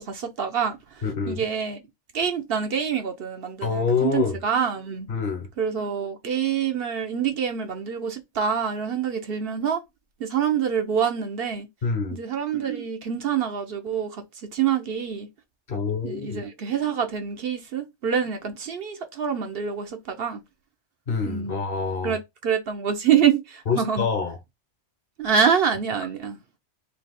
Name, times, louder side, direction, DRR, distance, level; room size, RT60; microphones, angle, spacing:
voice 1, 0.0-1.8 2.1-5.1 5.6-9.8 10.2-11.7 12.1-14.2 14.5-15.3 16.0-20.4 21.3-21.6 22.0-24.1 25.2-26.4, right 7 dB, 60° right, 0.9 m, -26 dB
voice 2, 1.0-1.5 3.6-4.4 5.1-5.5 11.8-12.2 15.7-16.4 21.1-22.2 23.7-24.4, left 5 dB, 55° left, 1.1 m, -26 dB
3.3 x 2.8 x 4.1 m
omnidirectional pair, 1.2 m